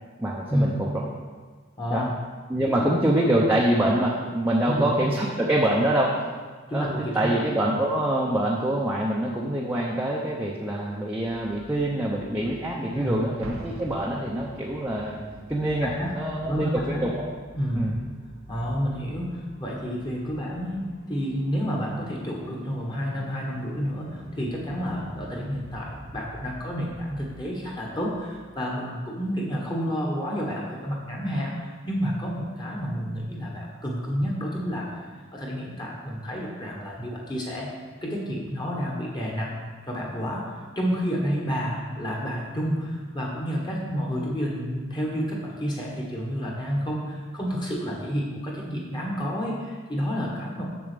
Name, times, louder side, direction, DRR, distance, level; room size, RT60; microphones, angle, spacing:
voice 1, 0.2-1.0 1.9-2.1 2.5-6.2 6.7-15.2 15.5-17.3 17.7-17.9, right 1 dB, 10° right, -4 dB, 0.7 m, -25 dB
voice 2, 1.8-2.1 2.7-2.9 3.9-4.0 4.7-4.9 6.7-7.4 7.7-7.8 12.9-13.2 15.8-16.2 16.5-17.0 17.5-17.9 18.5-35.0 35.3-37.7 38.0-50.7, equal, 20° left, -2 dB, 1.4 m, -30 dB
sound 1, 11.2-28.3, equal, 70° left, 2.6 m, -48 dB
Explosion, 13.4-15.0, right 1 dB, 80° right, 0.9 m, -40 dB
7.1 x 7.1 x 5.1 m, 1.4 s
head